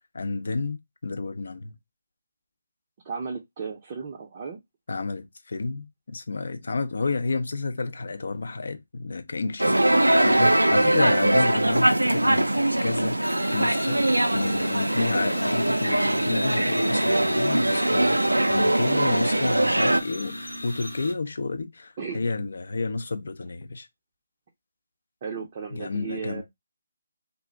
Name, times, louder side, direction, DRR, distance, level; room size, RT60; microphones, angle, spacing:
voice 1, 0.1-0.8 1.0-1.8 4.9-9.8 10.2-14.0 14.3-23.9 25.7-26.4, left 3 dB, 55° left, 0.5 m, -30 dB
voice 2, 3.0-4.6 10.1-10.3 10.6-10.8 18.7-19.2 22.0-22.2 25.2-26.4, right 5 dB, 30° right, 0.5 m, -35 dB
sound 1, 9.6-20.0, right 1 dB, 85° right, 0.4 m, -22 dB
sound 2, 13.2-21.1, equal, 85° left, 0.9 m, -36 dB
2.4 x 2.0 x 3.7 m
figure-of-eight pair, 150°, 0 cm